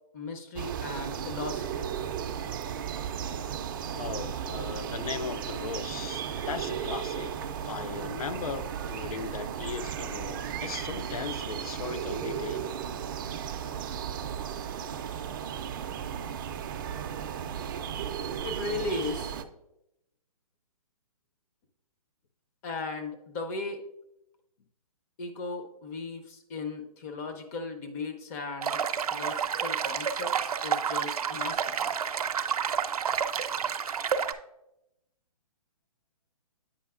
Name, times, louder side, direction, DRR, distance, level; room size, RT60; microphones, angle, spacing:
voice 1, 0.1-1.9 18.4-19.3 22.6-23.8 25.2-28.8 29.1-31.9, left 3 dB, 25° left, 6 dB, 0.6 m, -37 dB
sound 1, 0.6-19.4, right 8 dB, 35° right, 0.4 m, -35 dB
voice 2, 3.9-7.3 7.6-12.7, left 6 dB, 80° left, 13 dB, 0.5 m, -38 dB
sound 2, 28.6-34.3, right 7 dB, 90° right, 0.5 m, -29 dB
8.6 x 5.4 x 2.4 m, 0.85 s
hypercardioid pair, 150°, 18 cm